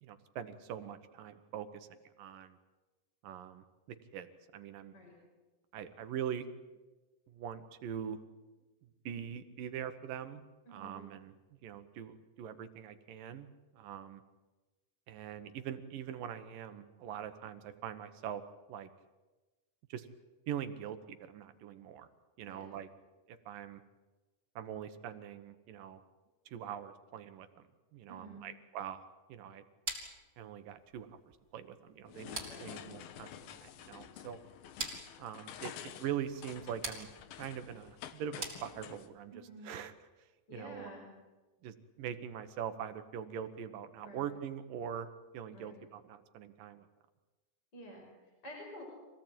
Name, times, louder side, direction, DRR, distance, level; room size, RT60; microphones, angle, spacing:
voice 1, 0.0-2.6 3.2-4.9 5.7-6.5 7.3-8.2 8.8-10.4 10.7-11.3 11.6-13.5 13.7-14.2 15.1-18.4 18.7-18.9 19.9-20.1 20.5-22.1 22.4-22.9 23.3-23.8 24.6-26.0 26.5-27.6 27.9-29.0 29.3-29.6 30.4-31.2 31.5-34.4 35.2-37.1 37.4-39.9 40.5-40.9 41.6-45.1 45.3-46.9, right 9 dB, 75° right, 10 dB, 2.9 m, -43 dB
voice 2, 10.7-11.0 22.4-22.7 28.1-28.4 32.5-32.7 39.3-39.7 40.5-41.1 44.0-44.3 45.5-45.7 47.7-48.8, equal, 30° left, -1 dB, 6.0 m, -50 dB
sound 1, 29.9-39.2, right 2 dB, 15° right, 4.1 m, -46 dB
sound 2, 32.1-39.1, left 10 dB, 85° left, 3.0 m, -49 dB
26.0 x 18.0 x 9.0 m, 1.2 s
omnidirectional pair, 4.1 m